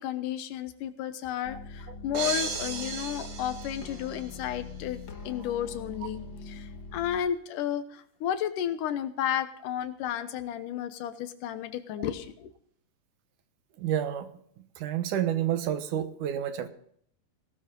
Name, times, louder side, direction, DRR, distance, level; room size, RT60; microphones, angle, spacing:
voice 1, 0.0-12.5, left 10 dB, 70° left, 11 dB, 2.5 m, -33 dB
sound 1, 1.4-7.2, left 3 dB, 45° left, 1.6 m, -43 dB
sound 2, 2.1-4.4, right 5 dB, 85° right, 4.2 m, -35 dB
voice 2, 13.8-14.3 14.8-16.7, right 10 dB, 70° right, 9 dB, 2.5 m, -29 dB
18.5 x 12.5 x 3.8 m, 0.63 s
omnidirectional pair, 4.0 m